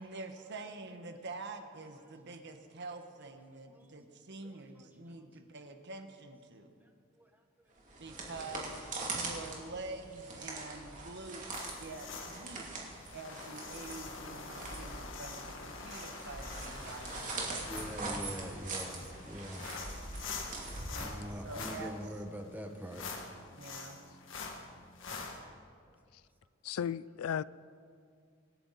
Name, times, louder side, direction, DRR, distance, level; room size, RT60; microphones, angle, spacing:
voice 1, 0.0-6.7 8.0-11.4 11.8-12.7 13.1-17.7 20.9-21.9 23.5-24.0, right 3 dB, 55° right, 1.3 m, -46 dB
voice 2, 4.4-5.1 7.2-7.3 16.1-16.3 17.7-19.7 20.4-20.6 21.0-23.0, equal, 10° right, 1.1 m, -44 dB
sound 1, 7.8-21.5, right 3 dB, 35° right, 2.7 m, -42 dB
sound 2, 11.5-25.4, left 4 dB, 60° left, 1.8 m, -45 dB
voice 3, 26.6-27.4, left 8 dB, 85° left, 0.4 m, -34 dB
25.5 x 10.5 x 4.2 m
head